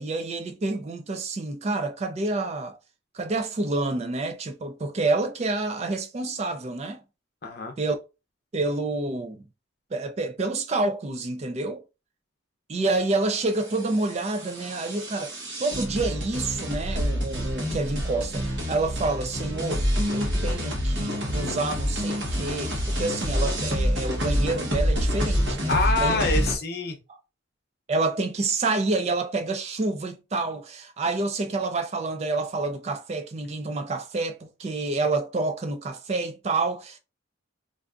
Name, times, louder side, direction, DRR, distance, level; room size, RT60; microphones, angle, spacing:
voice 1, 0.0-2.8 3.1-7.0 7.8-8.0 8.5-9.4 9.9-11.8 12.7-19.9 20.1-25.7 26.0-26.2 27.9-37.0, right 3 dB, 30° right, 0.3 m, -28 dB
voice 2, 7.4-7.7 25.7-27.0, left 3 dB, 50° left, 0.6 m, -26 dB
sound 1, 13.3-26.6, equal, 60° right, 1.2 m, -27 dB
3.3 x 2.5 x 2.4 m
head